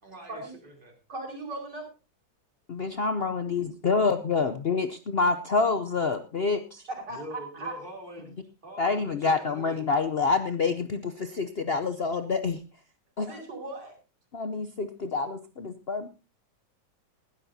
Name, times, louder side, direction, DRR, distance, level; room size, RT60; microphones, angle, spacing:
voice 1, 0.0-0.9 7.1-8.4 8.6-9.8, equal, 25° right, 2 dB, 3.5 m, -44 dB
voice 2, 1.1-1.9 7.1-7.7 13.2-14.0, right 2 dB, 55° right, 1 dB, 5.6 m, -38 dB
voice 3, 2.7-6.8 8.8-12.6 13.2-13.4 14.3-16.1, left 4 dB, 80° left, 9 dB, 0.5 m, -27 dB
19.5 x 13.0 x 2.8 m, 0.30 s
omnidirectional pair, 2.2 m